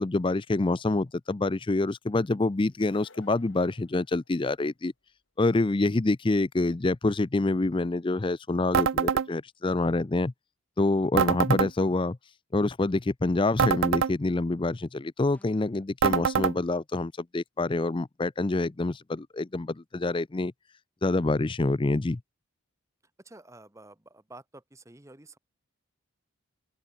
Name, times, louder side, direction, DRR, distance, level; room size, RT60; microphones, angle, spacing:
voice 1, 0.0-4.9 5.4-10.3 10.8-12.2 12.5-20.5 21.0-22.2, left 2 dB, 25° left, 0.4 m, -26 dB
sound 1, 2.7-4.7, left 3 dB, 60° left, 3.0 m, -56 dB
sound 2, 8.7-9.3 11.2-11.7 13.6-14.1 16.0-16.6, right 7 dB, 60° right, 0.4 m, -24 dB
sound 3, 15.3-15.9, equal, 5° left, 6.8 m, -61 dB
voice 2, 23.2-25.4, right 2 dB, 15° right, 1.0 m, -50 dB
open air
head